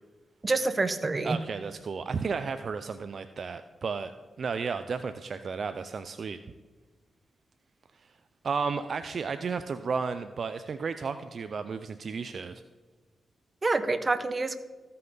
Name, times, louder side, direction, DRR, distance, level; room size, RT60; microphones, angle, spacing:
voice 1, 0.4-1.4 13.6-14.6, right 3 dB, 35° right, 11 dB, 0.8 m, -27 dB
voice 2, 1.2-4.1 4.4-6.4 8.4-12.6, right 5 dB, 60° right, 10 dB, 0.4 m, -33 dB
14.5 x 5.7 x 3.9 m, 1.3 s
cardioid pair, 55°, 0 cm